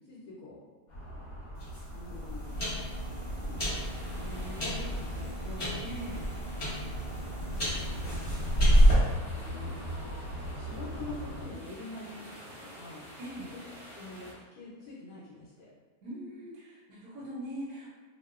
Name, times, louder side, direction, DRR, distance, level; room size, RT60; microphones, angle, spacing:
voice 1, 0.1-0.6 1.9-2.7 3.4-5.7 7.4-8.3 9.3-9.8 10.5-12.3 12.6-13.2 13.5-13.6 13.9-15.7, left 2 dB, 75° left, -8 dB, 1.1 m, -46 dB
sound 1, 0.9-11.5, equal, 45° left, 1.0 m, -40 dB
sound 2, 1.5-8.9, equal, 30° left, 0.7 m, -29 dB
sound 3, 3.6-14.3, right 1 dB, 50° right, 0.7 m, -50 dB
voice 2, 5.8-6.3 13.2-13.5 16.0-17.9, equal, 90° right, -7 dB, 1.2 m, -41 dB
2.9 x 2.0 x 2.3 m, 1.4 s
omnidirectional pair, 1.7 m